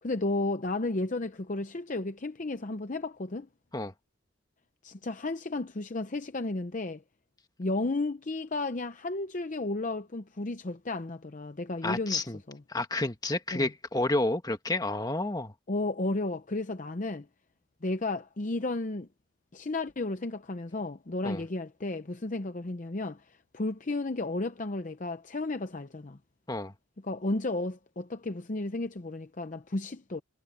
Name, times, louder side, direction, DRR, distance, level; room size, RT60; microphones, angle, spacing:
voice 1, 0.0-3.5 4.8-7.0 7.6-12.2 12.5-12.6 13.5-13.7 15.7-17.3 17.8-19.1 19.5-26.2 27.0-30.2, left 2 dB, 40° left, 0.7 m, -33 dB
voice 2, 11.8-12.4 12.7-15.5 21.2-21.4 26.5-26.7, left 2 dB, 20° left, 1.5 m, -30 dB
head